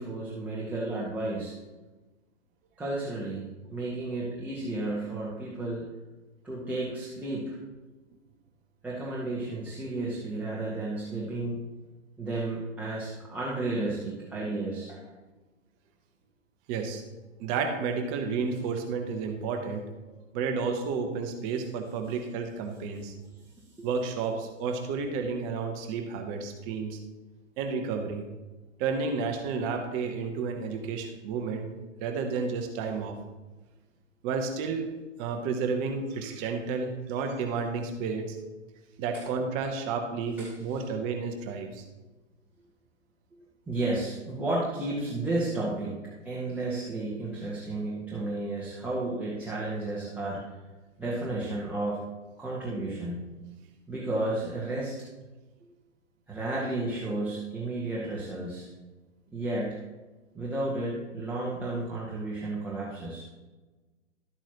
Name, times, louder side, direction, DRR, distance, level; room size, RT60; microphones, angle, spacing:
voice 1, 0.0-1.5 2.8-5.8 6.4-7.6 8.8-11.6 12.2-15.0 23.8-23.9 39.1-39.2 40.4-40.8 43.7-46.0 46.2-50.4 51.0-52.0 52.4-53.3 53.9-54.9 56.3-58.7 59.3-59.8 60.3-63.3, right 2 dB, 5° right, -7 dB, 1.4 m, -32 dB
voice 2, 16.7-17.0 17.4-19.8 20.3-23.1 23.8-27.0 27.6-28.2 28.8-31.7 32.0-33.2 34.2-34.9 35.2-38.4 39.0-41.8, right 5 dB, 20° right, 5 dB, 1.0 m, -31 dB
12.5 x 8.9 x 3.0 m, 1.2 s
figure-of-eight pair, 120°, 38 cm